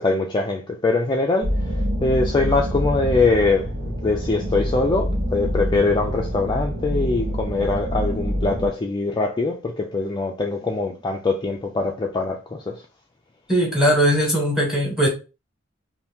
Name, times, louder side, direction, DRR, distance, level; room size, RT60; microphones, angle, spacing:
voice 1, 0.0-12.8, left 3 dB, 25° left, 0.4 m, -23 dB
sound 1, 1.4-8.7, equal, 85° right, 1.0 m, -26 dB
voice 2, 13.5-15.1, equal, 5° right, 1.4 m, -19 dB
2.8 x 2.6 x 3.4 m
head